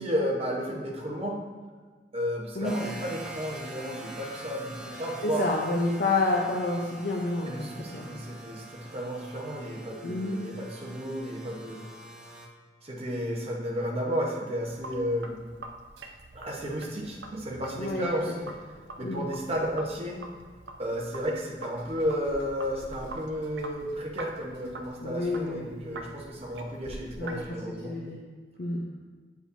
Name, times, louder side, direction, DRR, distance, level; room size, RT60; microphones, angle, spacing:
voice 1, 0.0-1.4 2.1-5.5 7.4-11.8 12.8-15.4 16.3-18.4 19.0-20.2 20.8-27.9, equal, 35° right, -1 dB, 1.0 m, -33 dB
sound 1, 2.6-12.5, right 2 dB, 5° right, 0.6 m, -45 dB
voice 2, 5.2-8.0 10.0-10.4 17.8-18.1 19.0-19.2 25.0-25.7 27.2-27.4 27.8-28.2 28.6-28.8, left 2 dB, 60° left, -1 dB, 0.6 m, -29 dB
Sink (filling or washing), 14.6-27.5, right 2 dB, 70° right, 0.6 m, -45 dB
8.2 x 4.9 x 2.7 m, 1.5 s
head